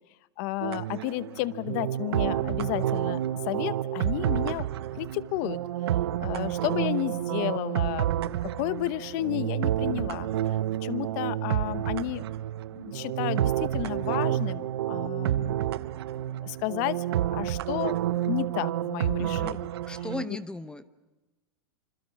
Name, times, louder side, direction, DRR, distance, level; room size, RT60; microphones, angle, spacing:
voice 1, 0.4-3.2 3.5-4.7 5.0-5.6 6.2-10.3 10.8-12.2 12.8-15.7 16.4-18.0 18.2-19.7, left 17 dB, 50° left, 15 dB, 0.9 m, -32 dB
sound 1, 0.6-20.3, right 12 dB, 75° right, 0.8 m, -29 dB
voice 2, 19.2-19.6 19.9-20.9, left 2 dB, 5° left, 12 dB, 0.8 m, -37 dB
26.5 x 26.0 x 6.3 m, 1.1 s
supercardioid pair, 135°, 13 cm